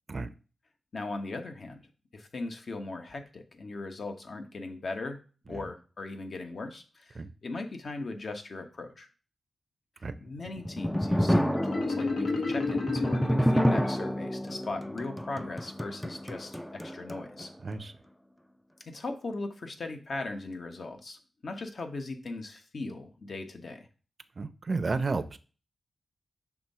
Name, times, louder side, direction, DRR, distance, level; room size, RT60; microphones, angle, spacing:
voice 1, 0.9-1.9 2.1-9.1 10.2-17.5 18.9-23.9, left 3 dB, 55° left, 5 dB, 1.1 m, -39 dB
sound 1, 10.3-17.5, equal, 5° left, 0.4 m, -29 dB
Marimba xylophone, 11.6-14.3, left 3 dB, 80° left, 1.4 m, -32 dB
voice 2, 24.4-25.4, right 3 dB, 40° right, 12 dB, 0.6 m, -32 dB
6.0 x 3.6 x 5.5 m, 0.35 s
wide cardioid pair, 105°, 0 cm